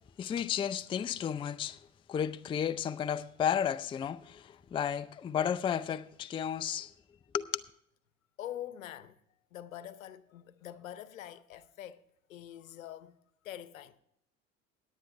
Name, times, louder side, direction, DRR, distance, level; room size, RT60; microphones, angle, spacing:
voice 1, 0.2-1.8 2.1-6.9 7.3-7.6, left 8 dB, 15° left, 0.4 m, -33 dB
voice 2, 8.4-9.2 9.5-12.0 12.3-13.2 13.4-14.0, left 11 dB, 75° left, 0.8 m, -44 dB
17.5 x 9.7 x 3.3 m
figure-of-eight pair, 65°, 40 cm